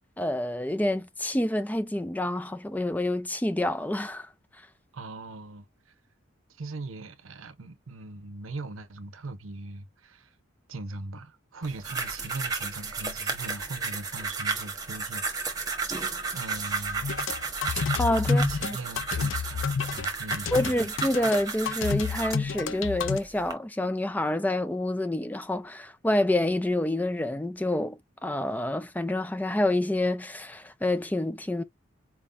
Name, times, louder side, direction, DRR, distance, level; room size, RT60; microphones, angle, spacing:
voice 1, 0.2-4.3 18.0-18.8 20.5-31.6, left 1 dB, 10° left, 0.4 m, -28 dB
voice 2, 4.9-5.9 6.6-10.3 10.7-15.7 16.3-17.1 18.3-20.9, right 3 dB, 90° right, 0.7 m, -39 dB
sound 1, 11.6-22.4 23.1-23.5, right 4 dB, 20° right, 1.2 m, -33 dB
sound 2, 17.0-23.2, left 6 dB, 70° left, 0.5 m, -30 dB
4.6 x 3.6 x 2.5 m
head